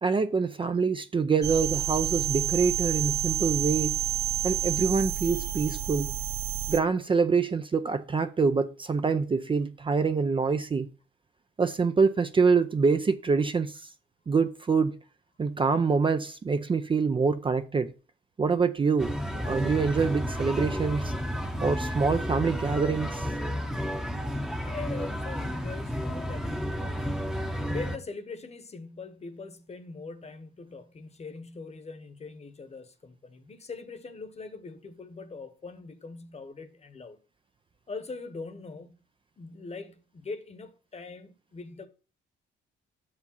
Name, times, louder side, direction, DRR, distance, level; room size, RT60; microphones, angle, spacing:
voice 1, 0.0-4.0 4.4-6.1 6.7-10.9 11.6-13.8 14.3-15.0 15.4-17.9 18.4-21.1 21.6-23.3, right 5 dB, 25° right, 0.5 m, -25 dB
sound 1, 1.4-6.8, right 12 dB, 60° right, 1.1 m, -29 dB
sound 2, 19.0-28.0, equal, 5° right, 0.8 m, -32 dB
voice 2, 24.6-26.9 27.7-37.2 37.9-39.0 39.4-41.9, left 4 dB, 35° left, 1.1 m, -42 dB
6.7 x 4.9 x 5.4 m
cardioid pair, 90°, 20 cm